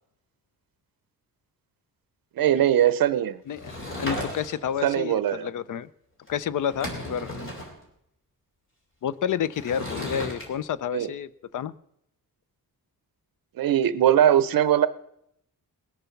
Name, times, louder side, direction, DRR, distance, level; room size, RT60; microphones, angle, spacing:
voice 1, 2.4-3.4 4.8-5.5 10.9-11.1 13.6-14.9, right 11 dB, 70° right, 15 dB, 0.7 m, -21 dB
voice 2, 3.5-5.9 6.3-7.4 9.0-11.7, left 9 dB, 60° left, 17 dB, 0.5 m, -30 dB
Sliding door / Wood, 3.5-4.8 6.3-6.4 6.6-7.7 9.5-10.5, left 1 dB, 35° left, 2.7 m, -34 dB
20.0 x 6.9 x 5.7 m, 0.77 s
wide cardioid pair, 175°, 36 cm